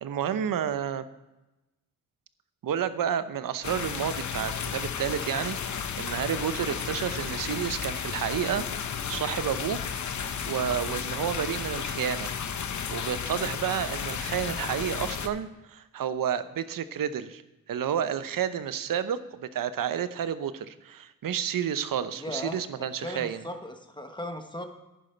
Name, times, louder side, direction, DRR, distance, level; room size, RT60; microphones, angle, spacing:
voice 1, 0.0-1.0 2.6-8.7 9.1-9.8 10.5-12.3 12.9-17.4 17.7-23.4, right 9 dB, 70° right, 13 dB, 0.8 m, -30 dB
sound 1, 3.6-15.3, left 7 dB, 55° left, 0.9 m, -33 dB
voice 2, 22.1-24.6, left 1 dB, 15° left, 5 dB, 1.2 m, -37 dB
10.5 x 10.5 x 4.4 m, 1.0 s
wide cardioid pair, 105°, 34 cm